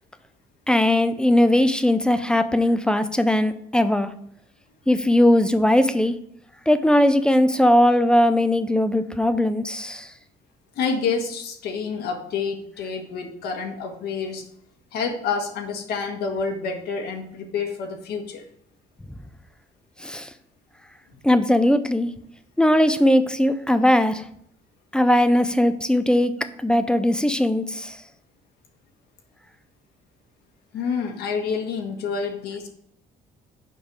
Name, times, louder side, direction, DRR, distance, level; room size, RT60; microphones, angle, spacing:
voice 1, 0.7-4.1 4.9-6.1 6.7-10.1 20.0-20.3 21.2-22.1 22.6-24.2 24.9-26.3 26.6-28.0, left 1 dB, 5° left, 10 dB, 0.5 m, -19 dB
voice 2, 10.7-14.4 14.9-18.4 30.7-32.7, left 5 dB, 70° left, 3 dB, 1.4 m, -28 dB
6.5 x 5.4 x 4.6 m, 0.69 s
cardioid pair, 110°, 17 cm